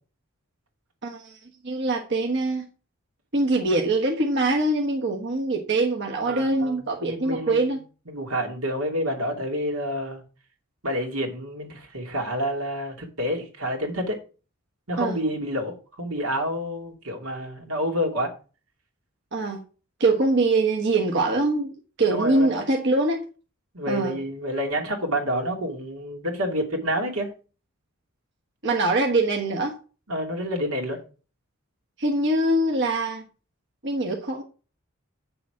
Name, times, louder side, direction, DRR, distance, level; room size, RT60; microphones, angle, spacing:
voice 1, 1.0-1.4 1.6-2.7 3.3-7.8 15.0-15.2 19.3-19.6 20.0-21.7 22.0-23.2 23.9-24.2 28.6-29.7 32.0-33.2 33.8-34.4, right 2 dB, 55° right, 1.3 m, -23 dB
voice 2, 6.2-7.8 8.1-10.2 10.8-14.2 14.9-18.3 22.1-22.5 23.7-27.3 30.1-31.0, equal, 85° right, 2.7 m, -28 dB
8.7 x 7.0 x 4.8 m
head